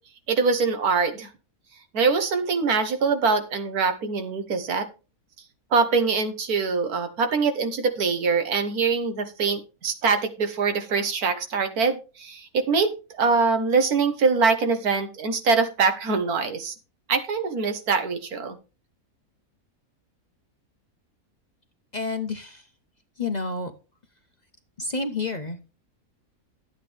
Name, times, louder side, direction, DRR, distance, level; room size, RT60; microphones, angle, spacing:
voice 1, 0.3-1.3 1.9-4.9 5.7-16.7 17.1-18.6, right 4 dB, 80° right, 8 dB, 1.7 m, -23 dB
voice 2, 21.9-22.7 23.2-23.7 24.8-25.7, left 3 dB, 35° left, 6 dB, 0.8 m, -29 dB
11.5 x 8.3 x 3.4 m, 0.32 s
omnidirectional pair, 1.6 m